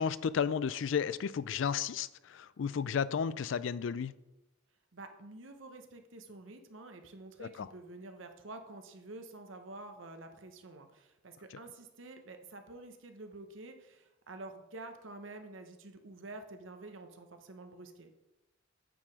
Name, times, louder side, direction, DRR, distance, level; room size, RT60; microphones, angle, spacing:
voice 1, 0.0-4.1 7.4-7.7, left 7 dB, 70° left, 0.4 m, -33 dB
voice 2, 4.9-18.1, right 2 dB, 80° right, 1.0 m, -49 dB
9.0 x 4.9 x 4.6 m
head